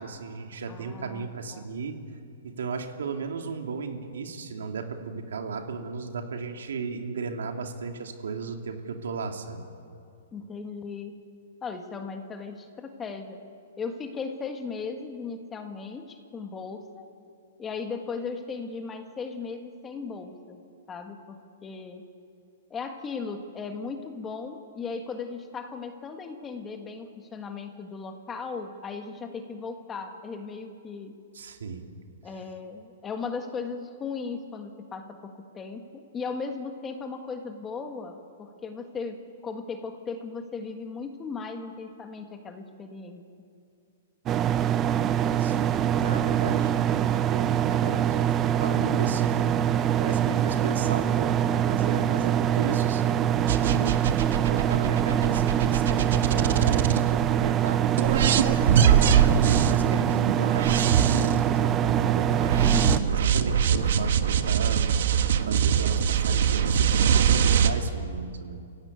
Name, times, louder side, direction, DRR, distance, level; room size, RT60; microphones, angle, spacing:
voice 1, 0.0-1.9 2.4-9.7 31.3-31.9 45.4-47.0 47.3-48.3 48.6-49.6 50.0-54.0 54.4-62.3 63.1-64.9 65.4-68.6, right 5 dB, 90° right, 4 dB, 2.9 m, -35 dB
voice 2, 0.7-1.7 10.3-11.1 11.6-13.4 13.8-17.1 17.6-20.6 20.9-22.0 22.7-31.1 32.2-43.3 62.6-63.1, left 5 dB, 15° left, 5 dB, 1.6 m, -37 dB
sound 1, 44.3-63.0, right 10 dB, 20° right, 0.6 m, -24 dB
sound 2, 53.5-57.5 58.0-67.7, right 8 dB, 60° right, 1.3 m, -23 dB
30.0 x 16.0 x 9.6 m, 2.4 s
hypercardioid pair, 170°, 0 cm